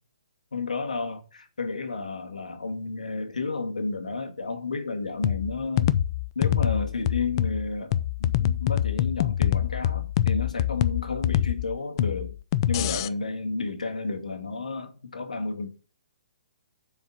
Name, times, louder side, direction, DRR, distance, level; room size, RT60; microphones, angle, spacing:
voice 1, 0.5-6.0 6.4-12.3 12.7-15.7, left 3 dB, 90° left, 1.9 m, -31 dB
sound 1, 5.2-13.1, left 12 dB, 35° left, 0.5 m, -25 dB
7.1 x 4.9 x 7.1 m
hypercardioid pair, 145°, 4 cm